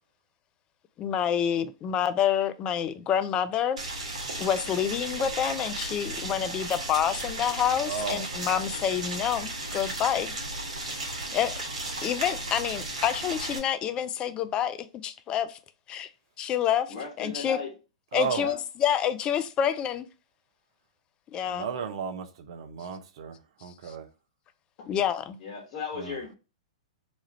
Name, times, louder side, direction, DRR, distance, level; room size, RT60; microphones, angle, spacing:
voice 1, 1.0-3.8 4.4-10.3 11.3-11.5 12.0-15.6 15.9-16.1 16.4-17.6 18.1-20.1 21.3-21.7 23.9-24.0 24.9-25.4, left 9 dB, 25° left, 0.4 m, -28 dB
Boiling, 3.8-13.6, right 2 dB, 75° right, 1.2 m, -35 dB
voice 2, 7.8-8.2 18.1-18.5 21.5-24.1 26.0-26.2, right 6 dB, 60° right, 0.6 m, -34 dB
voice 3, 16.9-17.7 18.3-18.6 25.4-26.4, left 5 dB, 45° left, 1.2 m, -36 dB
3.1 x 2.4 x 4.1 m
hypercardioid pair, 110°, 3 cm